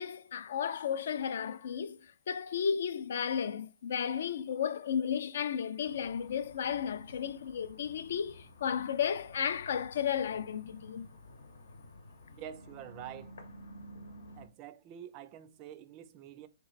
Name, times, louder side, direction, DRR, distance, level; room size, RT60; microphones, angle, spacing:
voice 1, 0.0-2.0 2.3-11.1, left 8 dB, 60° left, 0.4 m, -33 dB
sound 1, 5.8-14.5, left 1 dB, 85° left, 1.0 m, -52 dB
voice 2, 12.4-13.3 14.4-16.5, right 11 dB, 30° right, 0.4 m, -47 dB
3.4 x 3.1 x 4.0 m
hypercardioid pair, 155°, 0 cm